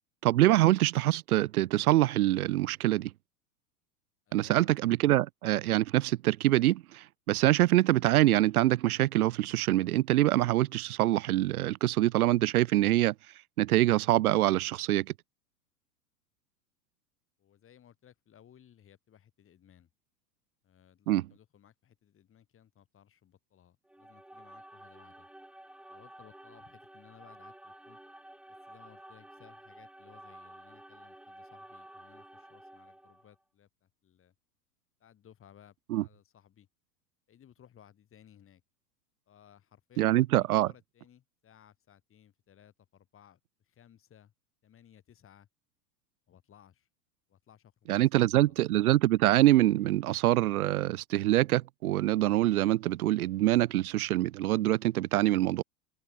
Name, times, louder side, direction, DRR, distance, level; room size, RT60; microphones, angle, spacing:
voice 1, 0.2-3.1 4.3-13.1 13.6-15.1 21.1-21.2 35.9-36.0 40.0-40.7 47.9-55.6, right 15 dB, 60° right, 0.6 m, -25 dB
voice 2, 4.3-4.7 17.4-19.9 20.6-25.3 25.9-28.0 28.7-34.3 35.0-36.7 37.3-38.6 39.3-44.3 44.6-45.5 46.3-46.9 47.3-48.5, left 9 dB, 25° left, 6.5 m, -60 dB
sound 1, 23.9-33.3, right 1 dB, ahead, 1.9 m, -52 dB
figure-of-eight pair, 95°, 49 cm